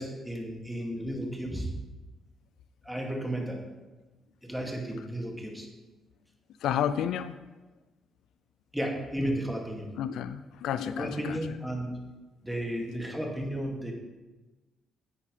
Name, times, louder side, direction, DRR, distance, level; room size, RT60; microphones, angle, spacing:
voice 1, 0.0-1.7 2.8-3.6 4.4-5.7 8.7-9.9 11.0-12.0 12.4-13.9, equal, 5° right, 0 dB, 2.3 m, -33 dB
voice 2, 6.6-7.3 10.0-11.4, left 9 dB, 80° left, 13 dB, 0.3 m, -31 dB
11.0 x 8.3 x 3.3 m, 1.2 s
cardioid pair, 75°, 0 cm